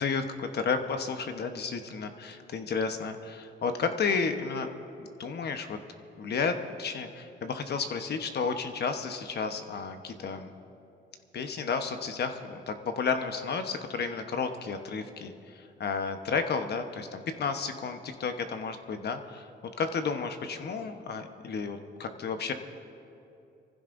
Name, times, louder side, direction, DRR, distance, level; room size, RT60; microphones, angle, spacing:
voice 1, 0.0-4.7 5.0-5.8 6.2-10.5 11.3-19.5 19.8-22.5, left 5 dB, 55° left, 7 dB, 1.1 m, -32 dB
24.5 x 15.5 x 2.6 m, 2.7 s
cardioid pair, 90°, 20 cm